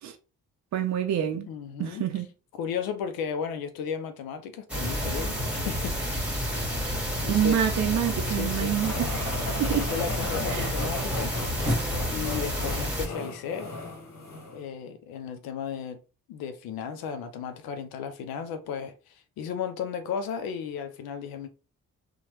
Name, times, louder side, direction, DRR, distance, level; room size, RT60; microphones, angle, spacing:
voice 1, 0.7-1.5 1.8-2.3 7.3-9.9 10.5-10.7, right 10 dB, 50° right, 0.5 m, -27 dB
voice 2, 1.5-2.0 2.5-6.0 7.2-7.7 8.3-8.7 9.7-11.4 12.1-13.8 14.5-16.0 16.3-21.5, left 7 dB, 80° left, 0.5 m, -34 dB
sound 1, 4.7-13.1, equal, 5° right, 1.4 m, -30 dB
sound 2, 8.8-14.6, left 2 dB, 60° left, 1.2 m, -36 dB
2.9 x 2.1 x 2.9 m
supercardioid pair, 50°, 36 cm